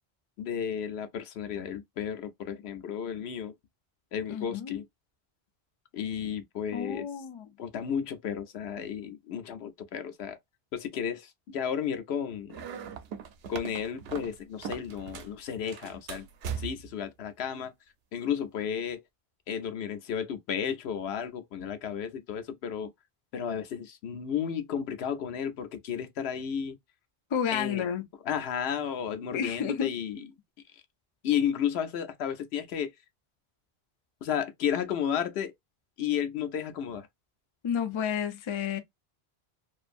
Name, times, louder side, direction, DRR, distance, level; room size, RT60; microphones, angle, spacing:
voice 1, 0.4-3.5 4.1-4.8 5.9-7.1 7.6-10.4 10.7-12.6 13.5-16.3 16.6-17.7 18.1-19.0 19.5-22.9 23.3-26.8 27.5-27.8 28.3-30.2 30.7-30.8 31.2-32.9 34.2-35.5 36.0-37.1, left 8 dB, 80° left, 0.9 m, -33 dB
voice 2, 4.3-4.7 6.7-7.5 27.3-28.1 29.3-29.9 37.6-38.8, left 8 dB, 45° left, 0.4 m, -31 dB
sound 1, 12.5-15.4 15.7-17.0, right 7 dB, 75° right, 0.8 m, -39 dB
2.5 x 2.5 x 2.4 m
omnidirectional pair, 1.1 m